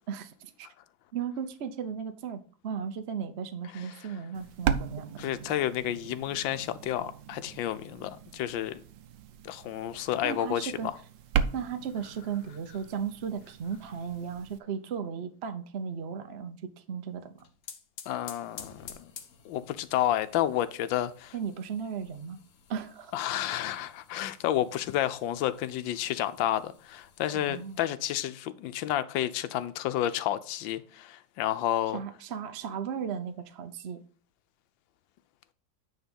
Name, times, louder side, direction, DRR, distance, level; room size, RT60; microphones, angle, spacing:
voice 1, 0.1-0.7 1.1-5.1 10.2-10.9 11.5-16.6 16.9-17.4 21.3-22.4 22.7-23.1 27.3-27.8 31.9-34.0, right 7 dB, 60° right, 0.7 m, -36 dB
sound 1, 4.3-14.6, right 8 dB, 80° right, 1.4 m, -37 dB
voice 2, 5.2-8.8 9.4-10.9 18.1-19.1 19.4-21.3 23.1-32.0, left 12 dB, 85° left, 1.4 m, -30 dB
sound 2, 17.2-27.8, left 7 dB, 55° left, 1.0 m, -52 dB
9.6 x 3.6 x 5.3 m
omnidirectional pair, 2.0 m